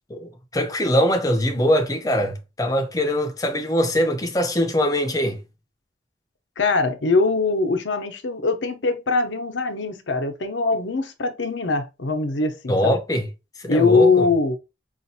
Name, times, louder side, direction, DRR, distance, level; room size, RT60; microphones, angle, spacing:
voice 1, 0.1-5.4 12.7-13.3 13.6-14.3, equal, 20° left, 0.7 m, -22 dB
voice 2, 6.6-13.0 13.7-14.6, left 3 dB, 80° left, 0.8 m, -22 dB
5.4 x 2.5 x 2.7 m
head